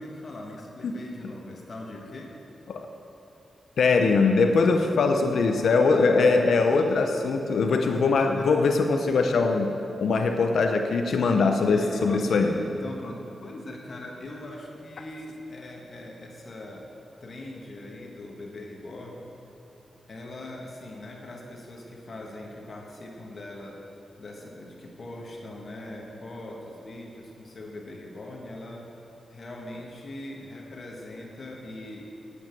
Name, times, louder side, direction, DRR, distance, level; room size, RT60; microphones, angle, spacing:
voice 1, 0.0-2.3 5.9-6.4 6.7-6.9 7.9-8.5 11.3-16.9 17.2-19.3 20.1-23.8 24.2-28.9 29.3-32.1, left 1 dB, 45° left, 0 dB, 1.4 m, -40 dB
voice 2, 3.8-12.6, left 4 dB, 75° left, 5 dB, 0.7 m, -22 dB
8.9 x 8.1 x 9.1 m, 2.9 s
wide cardioid pair, 145°, 0 cm